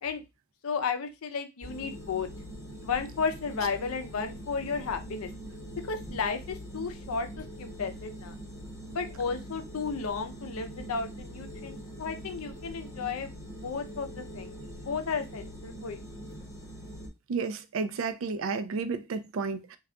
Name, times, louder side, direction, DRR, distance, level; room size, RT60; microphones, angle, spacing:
voice 1, 0.6-2.3 2.8-5.3 5.8-8.3 8.9-13.3 13.6-14.6 14.8-16.1, left 5 dB, 80° left, 0.5 m, -33 dB
sound 1, 1.6-17.1, equal, 15° left, 0.8 m, -43 dB
voice 2, 17.3-19.8, right 4 dB, 65° right, 0.4 m, -32 dB
2.3 x 2.2 x 3.6 m
head